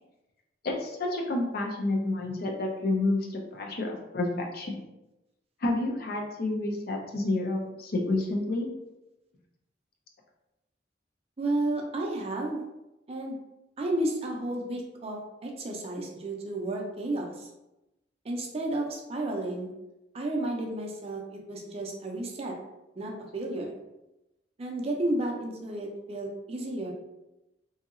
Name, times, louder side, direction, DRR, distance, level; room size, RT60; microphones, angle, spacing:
voice 1, 0.6-4.9 5.6-8.7, left 2 dB, 55° left, 1 dB, 0.5 m, -29 dB
voice 2, 11.4-12.6 13.1-13.4 13.8-17.5 18.2-19.7 20.1-22.5 23.0-23.8 24.6-26.9, right 1 dB, 35° right, 0 dB, 0.5 m, -32 dB
2.8 x 2.7 x 2.5 m, 0.95 s
head